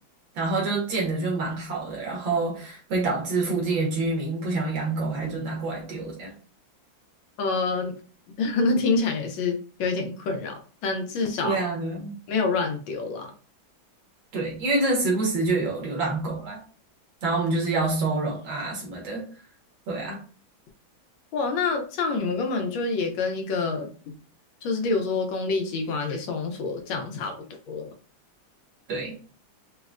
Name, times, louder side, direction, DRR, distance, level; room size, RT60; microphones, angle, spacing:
voice 1, 0.4-6.3 11.4-12.2 14.3-16.6 17.2-19.3 19.9-20.2 28.9-29.2, right 3 dB, 80° right, 2.0 m, -27 dB
voice 2, 7.4-8.0 8.4-11.7 12.3-13.3 21.3-24.1 24.6-27.9, left 3 dB, 85° left, 1.5 m, -27 dB
4.7 x 2.1 x 2.4 m
omnidirectional pair, 2.1 m